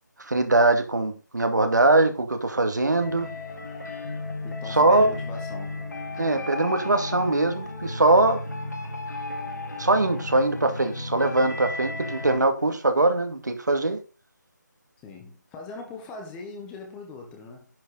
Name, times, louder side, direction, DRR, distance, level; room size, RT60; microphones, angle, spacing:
voice 1, 0.3-3.3 4.7-5.1 6.2-8.4 9.8-14.0, right 2 dB, 70° right, 2.3 m, -22 dB
sound 1, 3.0-12.4, left 2 dB, 65° left, 4.3 m, -34 dB
voice 2, 4.4-5.8 15.0-17.7, left 3 dB, 10° left, 1.5 m, -40 dB
10.5 x 8.0 x 4.0 m
figure-of-eight pair, 155°, 10 cm